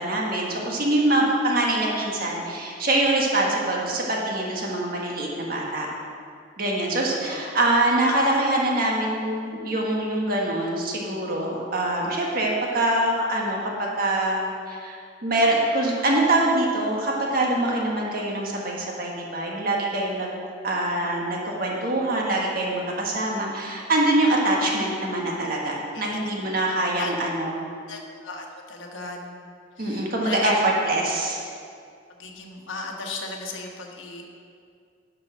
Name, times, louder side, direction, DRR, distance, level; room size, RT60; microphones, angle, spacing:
voice 1, 0.0-5.9 6.6-15.0 15.2-20.3 20.6-27.6 29.8-31.4, right 1 dB, 50° right, -2 dB, 1.6 m, -24 dB
voice 2, 7.2-7.7 25.9-26.3 27.0-27.1 27.9-29.5 29.8-30.5 32.2-34.4, left 3 dB, 85° left, 1 dB, 1.3 m, -36 dB
10.5 x 5.9 x 6.3 m, 2.3 s
head